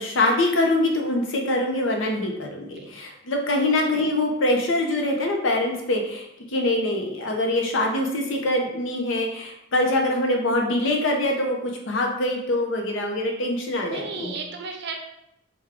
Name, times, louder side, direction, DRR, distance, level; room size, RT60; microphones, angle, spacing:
voice 1, 0.0-6.3 6.5-14.3, left 1 dB, 65° left, 2 dB, 0.6 m, -24 dB
voice 2, 13.9-15.0, right 4 dB, 55° right, 3 dB, 0.5 m, -35 dB
3.4 x 2.2 x 3.5 m, 0.78 s
head